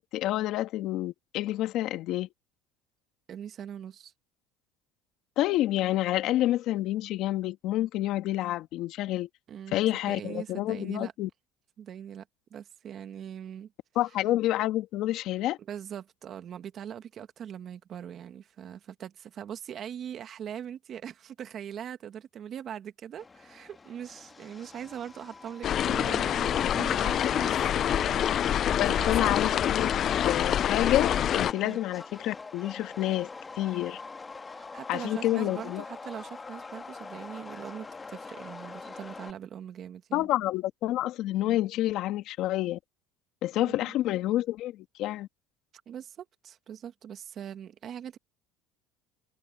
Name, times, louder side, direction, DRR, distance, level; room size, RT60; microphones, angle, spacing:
voice 1, 0.0-2.3 5.4-9.3 9.7-11.3 14.0-15.6 28.8-29.9 30.2-33.3 33.6-34.0 34.9-35.8 40.1-42.8 43.4-45.3, left 14 dB, 60° left, 2.1 m, -28 dB
voice 2, 3.3-4.1 9.5-11.1 11.8-12.3 12.5-13.7 15.7-28.2 28.6-29.6 29.8-29.9 31.6-31.8 34.5-40.3 43.6-44.0 45.9-48.2, right 9 dB, 45° right, 2.0 m, -41 dB
Subway metro underground, 23.2-39.3, left 4 dB, 20° left, 1.7 m, -45 dB
sound 1, 25.6-31.5, left 10 dB, 45° left, 0.3 m, -26 dB
supercardioid pair, 110°, 0 cm